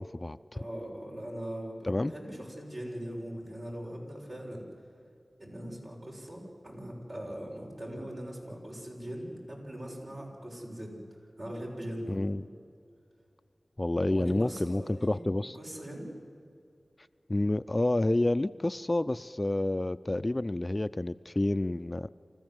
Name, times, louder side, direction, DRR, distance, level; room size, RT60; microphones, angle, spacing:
voice 1, 0.0-0.6 1.9-2.1 12.1-12.4 13.8-15.6 17.3-22.1, left 1 dB, 35° left, 13 dB, 0.5 m, -29 dB
voice 2, 0.5-4.7 5.4-11.0 11.4-12.4 14.1-16.1, equal, 55° right, -2 dB, 6.8 m, -41 dB
28.0 x 14.5 x 7.9 m, 2.4 s
wide cardioid pair, 45°, 0 cm